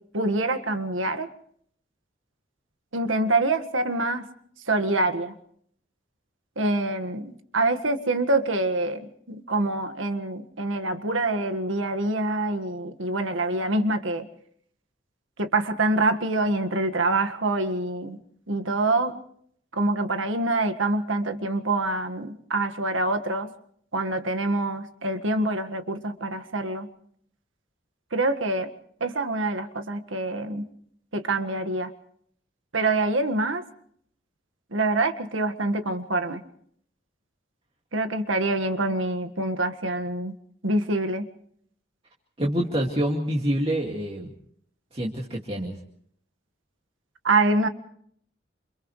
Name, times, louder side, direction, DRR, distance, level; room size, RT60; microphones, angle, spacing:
voice 1, 0.1-1.3 2.9-4.3 4.7-5.3 6.6-14.3 15.4-18.2 18.5-19.2 19.7-23.5 23.9-26.9 28.1-28.7 29.0-30.6 31.1-31.9 32.7-33.6 34.7-36.4 37.9-40.3 40.6-41.3 47.2-47.7, right 2 dB, 90° right, 8 dB, 1.8 m, -25 dB
voice 2, 42.4-44.3 44.9-45.7, equal, 30° right, -1 dB, 2.3 m, -26 dB
29.0 x 28.5 x 3.3 m, 0.64 s
head